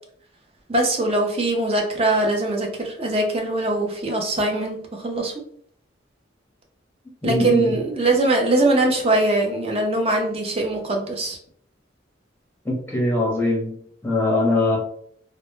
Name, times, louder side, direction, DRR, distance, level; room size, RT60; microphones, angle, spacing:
voice 1, 0.7-5.3 7.2-11.4, right 2 dB, 30° right, 1 dB, 0.5 m, -22 dB
voice 2, 7.2-7.7 12.6-13.8 14.0-14.8, left 2 dB, 10° left, -3 dB, 0.7 m, -22 dB
2.1 x 2.0 x 2.9 m, 0.62 s
head